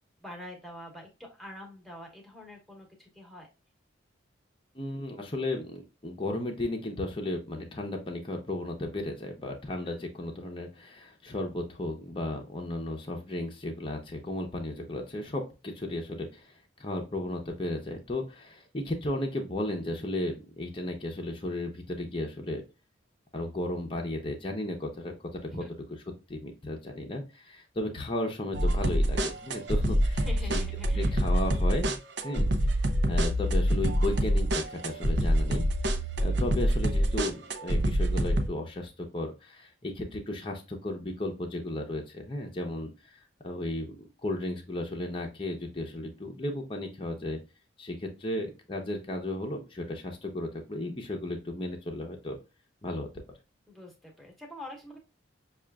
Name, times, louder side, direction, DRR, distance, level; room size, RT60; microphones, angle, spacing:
voice 1, 0.2-3.5 9.8-10.0 25.5-25.7 30.2-31.1 53.7-55.0, left 1 dB, ahead, 0 dB, 1.1 m, -45 dB
voice 2, 4.7-22.6 23.3-25.2 25.4-25.5 26.3-30.6 30.9-32.8 33.0-35.7 36.2-43.2 43.4-47.4 47.8-52.4 52.8-53.1, left 1 dB, 25° left, 2 dB, 0.7 m, -34 dB
sound 1, 28.5-38.5, equal, 60° right, 0.6 m, -26 dB
6.2 x 2.4 x 2.2 m, 0.30 s
head